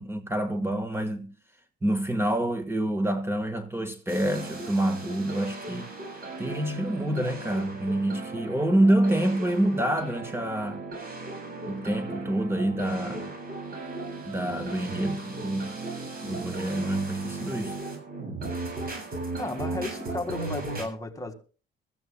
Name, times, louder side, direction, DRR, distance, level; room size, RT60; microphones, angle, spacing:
voice 1, 0.0-1.3 1.8-5.9 6.4-10.8 11.7-13.3 14.3-15.8 16.2-17.8, right 1 dB, 10° right, 1.5 m, -27 dB
sound 1, 4.1-20.8, right 2 dB, 50° right, 7.2 m, -37 dB
voice 2, 19.4-21.3, left 2 dB, 15° left, 1.8 m, -34 dB
23.0 x 14.5 x 2.3 m
cardioid pair, 90°, 20 cm